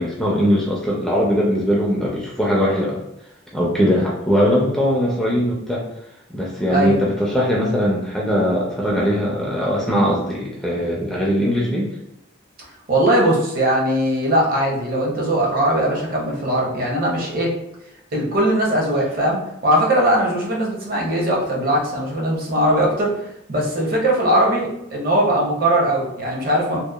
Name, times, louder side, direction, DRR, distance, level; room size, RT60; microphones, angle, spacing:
voice 1, 0.0-3.0 3.5-5.8 6.3-11.9, equal, ahead, -4 dB, 0.3 m, -20 dB
voice 2, 12.9-17.6 18.1-23.1 23.5-26.8, right 1 dB, 45° right, -2 dB, 0.6 m, -20 dB
2.8 x 2.1 x 2.2 m, 0.82 s
head